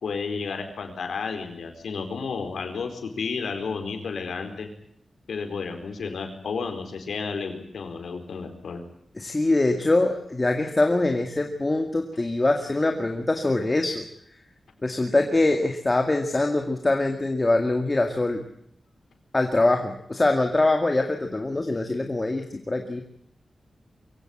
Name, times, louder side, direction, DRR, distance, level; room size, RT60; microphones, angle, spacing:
voice 1, 0.0-4.7 5.3-8.8, left 5 dB, 90° left, 6 dB, 4.4 m, -32 dB
voice 2, 9.2-14.1 14.8-18.4 19.3-23.0, left 2 dB, 20° left, 5 dB, 2.1 m, -23 dB
23.5 x 17.0 x 10.0 m, 0.69 s
wide cardioid pair, 150°, 0 cm